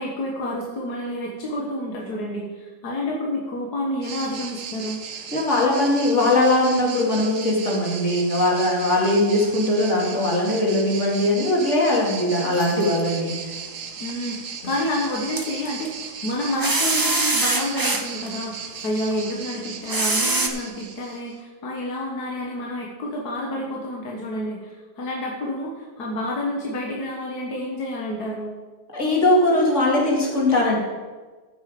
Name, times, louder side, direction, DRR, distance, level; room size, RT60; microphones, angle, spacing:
voice 1, 0.0-5.0 14.0-28.5, left 1 dB, 80° left, -2 dB, 1.9 m, -29 dB
sound 1, 4.0-21.4, right 6 dB, 60° right, 1.2 m, -36 dB
voice 2, 5.3-13.5 28.9-30.8, left 1 dB, 45° left, -3 dB, 2.9 m, -20 dB
sound 2, 12.6-13.0 15.4-15.9 16.6-18.3 19.1-19.2 19.9-20.5, right 2 dB, 20° right, 0.6 m, -22 dB
14.0 x 6.2 x 5.2 m, 1.3 s
omnidirectional pair, 1.7 m